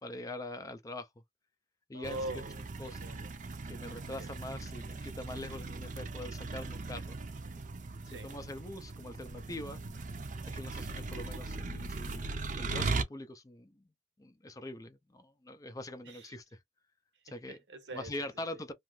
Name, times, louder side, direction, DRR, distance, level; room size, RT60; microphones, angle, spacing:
voice 1, 0.0-1.1 1.9-2.4 2.8-3.0 3.7-7.2 8.1-9.8 10.5-13.8 14.2-16.6 17.2-17.6 17.9-18.7, left 1 dB, 20° left, 0.4 m, -43 dB
voice 2, 1.9-3.3 4.2-4.3 8.1-8.3 16.1-16.3 17.5-18.3, right 1 dB, 80° right, 0.8 m, -43 dB
sound 1, 2.0-13.0, right 3 dB, 45° right, 0.6 m, -39 dB
2.7 x 2.4 x 3.1 m
head